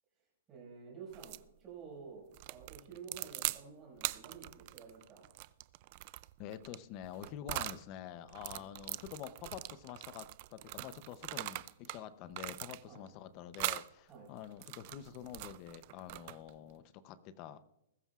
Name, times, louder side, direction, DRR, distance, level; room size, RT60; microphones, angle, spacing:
voice 1, 0.5-5.3 8.5-8.7 12.9-13.0 14.1-14.3, right 5 dB, 15° right, -3 dB, 5.3 m, -51 dB
sound 1, 1.1-1.5 2.3-3.6 4.0-7.8 8.3-12.0 12.3-13.1 13.5-13.9 14.4-16.6, right 18 dB, 30° right, 0.3 m, -42 dB
voice 2, 6.4-17.6, left 10 dB, 25° left, 13 dB, 0.6 m, -47 dB
20.5 x 13.0 x 2.4 m, 0.86 s
hypercardioid pair, 175°, 0 cm